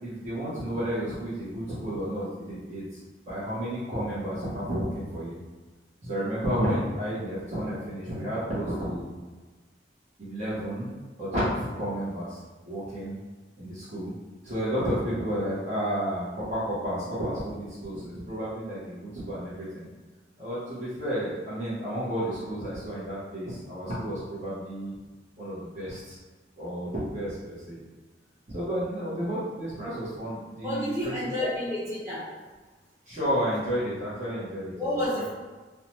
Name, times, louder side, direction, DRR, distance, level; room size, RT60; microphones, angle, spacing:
voice 1, 0.0-5.4 6.0-9.1 10.2-10.9 11.2-12.4 12.6-13.2 13.6-14.1 14.4-19.9 20.4-25.0 25.4-26.2 26.6-27.8 28.5-31.5 33.1-34.7 35.1-35.2, equal, 40° right, -11 dB, 0.8 m, -31 dB
voice 2, 30.6-32.3 34.7-35.3, left 1 dB, 15° right, -10 dB, 1.0 m, -30 dB
2.7 x 2.1 x 2.9 m, 1.3 s
head